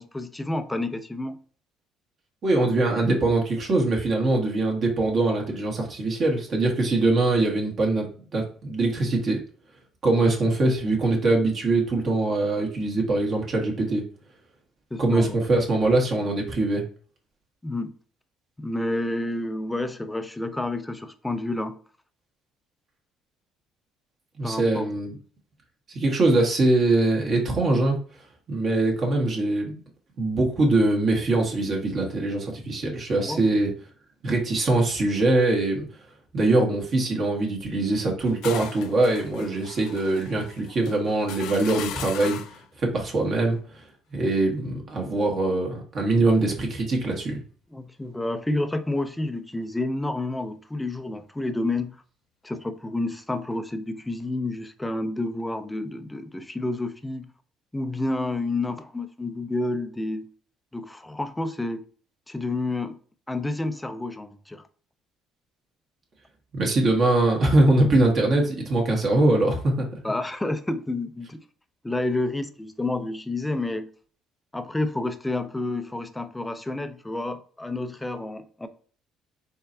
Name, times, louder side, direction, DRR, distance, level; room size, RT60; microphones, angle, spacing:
voice 1, 0.0-1.4 14.9-15.4 17.6-17.9 18.6-21.8 24.4-24.9 33.2-33.4 47.7-52.0 52.4-57.3 57.7-60.3 60.7-61.8 62.3-63.0 63.3-64.6 70.0-71.4 71.8-73.9 74.5-78.7, left 2 dB, 10° left, 0.5 m, -29 dB
voice 2, 2.4-8.1 8.3-9.4 10.0-14.0 15.0-16.8 24.4-25.1 25.9-28.0 28.5-29.8 30.2-33.7 34.2-35.8 36.3-42.4 42.8-43.8 44.1-47.4 66.5-70.0, right 2 dB, 40° right, 1.5 m, -22 dB
sound 1, 38.0-42.7, left 9 dB, 75° left, 0.5 m, -38 dB
4.4 x 4.3 x 2.7 m
cardioid pair, 130°, 0 cm